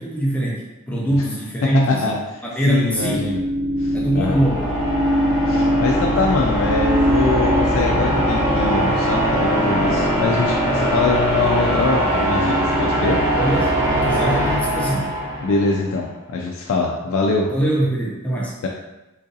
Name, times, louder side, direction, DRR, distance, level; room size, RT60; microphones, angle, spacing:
voice 1, 0.0-2.1 2.4-3.3 3.9-4.7 13.4-15.1 17.5-18.5, right 1 dB, 5° left, -4 dB, 0.5 m, -22 dB
voice 2, 1.6-3.4 3.8-4.4 5.5-13.2 15.4-17.5 18.6-18.7, left 3 dB, 90° left, 0 dB, 0.4 m, -23 dB
sound 1, 2.7-15.8, equal, 15° right, 0.9 m, -20 dB
3.8 x 2.5 x 2.6 m, 0.97 s
head